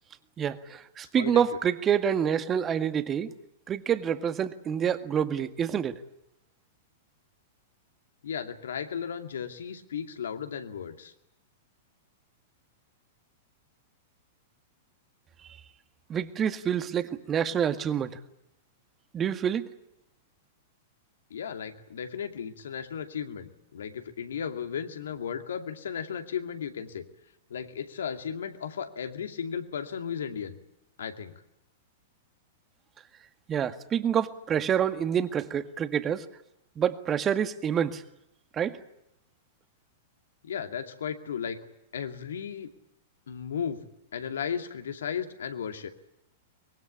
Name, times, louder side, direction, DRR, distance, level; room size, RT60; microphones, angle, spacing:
voice 1, 0.4-3.3 3.7-6.0 16.1-18.2 19.1-19.7 33.5-36.3 36.8-38.0 38.5-38.8, right 8 dB, 25° right, 10 dB, 1.8 m, -27 dB
voice 2, 8.2-11.1 21.3-27.0 27.5-30.6 31.0-31.3 40.4-41.6 41.9-42.7 43.3-43.8 44.1-45.9, left 7 dB, 70° left, 7 dB, 2.5 m, -35 dB
24.5 x 22.5 x 8.6 m, 0.83 s
figure-of-eight pair, 100°, 0 cm